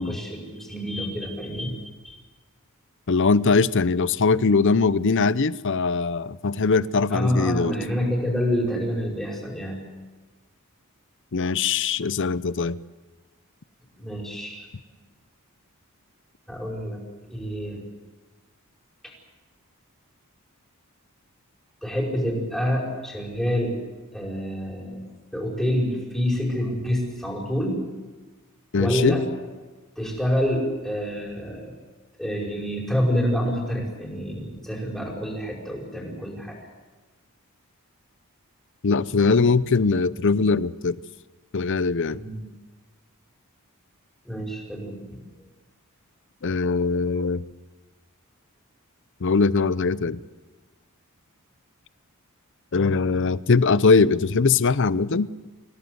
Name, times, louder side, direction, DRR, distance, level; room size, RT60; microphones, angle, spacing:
voice 1, 0.0-1.8 2.0-2.2 7.1-9.9 14.0-14.7 16.5-17.0 17.3-17.8 19.0-19.1 21.8-23.8 24.1-25.0 25.3-27.8 28.8-29.3 30.0-31.7 32.2-36.6 42.1-42.4 44.3-45.2, equal, ahead, 5.4 m, -27 dB
voice 2, 3.1-7.7 11.3-12.8 28.7-29.2 38.8-41.0 41.5-42.2 46.4-47.5 49.2-50.2 52.7-55.3, left 4 dB, 55° left, 0.7 m, -21 dB
26.0 x 16.5 x 8.0 m
head